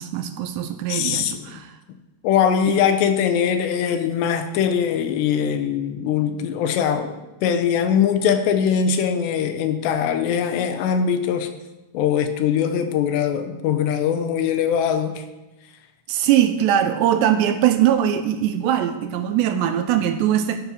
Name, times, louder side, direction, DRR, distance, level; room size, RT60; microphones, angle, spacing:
voice 1, 0.0-1.7 2.7-2.8 16.1-20.6, right 10 dB, 80° right, 8 dB, 2.6 m, -21 dB
voice 2, 0.9-1.6 2.2-11.5 11.9-15.2, left 8 dB, 75° left, 8 dB, 2.9 m, -21 dB
13.0 x 10.5 x 6.1 m, 1.1 s
omnidirectional pair, 5.5 m